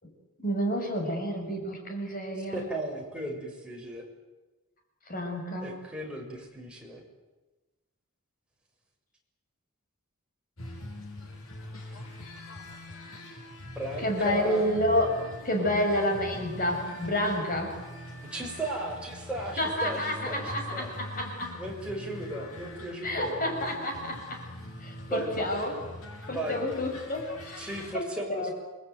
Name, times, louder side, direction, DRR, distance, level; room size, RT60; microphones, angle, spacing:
voice 1, 0.4-2.6 5.1-5.7 14.0-17.7 19.6-21.6 23.0-24.5 24.8-25.7 26.3-27.7 27.9-28.5, left 1 dB, 40° left, 3 dB, 6.4 m, -29 dB
voice 2, 2.5-4.0 5.6-7.0 13.7-14.7 15.5-15.7 18.3-20.9 21.5-23.4 25.1-25.9 26.2-26.6 27.6-28.5, right 1 dB, 5° right, -1 dB, 6.5 m, -36 dB
sound 1, 10.6-27.9, left 1 dB, 80° left, 6.7 m, -43 dB
29.0 x 21.0 x 9.3 m, 1.1 s
head